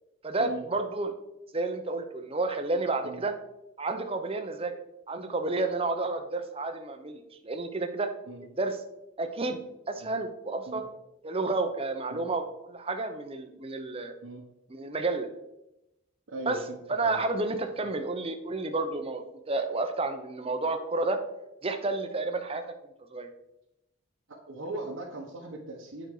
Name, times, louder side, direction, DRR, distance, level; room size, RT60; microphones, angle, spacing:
voice 1, 0.2-1.1 1.5-3.3 3.8-4.7 5.1-8.1 8.6-8.8 9.2-9.6 9.9-10.8 11.2-12.4 12.7-14.1 14.7-15.3 16.5-16.6 16.9-21.2 21.6-22.6 23.1-23.3, right 3 dB, 30° right, 6 dB, 0.8 m, -30 dB
voice 2, 16.3-17.2 24.3-26.1, right 2 dB, 85° right, -3 dB, 1.3 m, -39 dB
9.1 x 5.2 x 4.9 m, 0.90 s
head